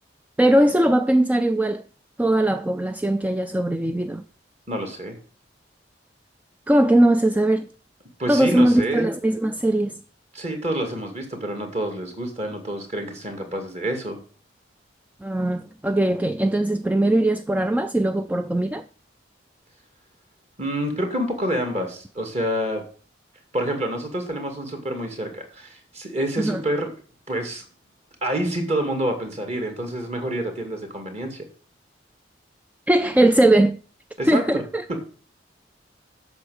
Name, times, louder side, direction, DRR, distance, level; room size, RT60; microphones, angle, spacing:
voice 1, 0.4-1.8 2.2-4.2 6.7-7.7 8.3-10.0 15.2-18.8 26.4-26.6 32.9-33.8 34.3-34.8, right 1 dB, 10° right, 0.3 m, -20 dB
voice 2, 4.7-5.2 8.2-9.1 10.3-14.2 20.6-22.8 23.5-26.9 27.3-27.6 28.2-31.4 34.2-34.6 34.9-35.0, right 1 dB, 35° right, 2.2 m, -27 dB
8.2 x 6.3 x 6.4 m
head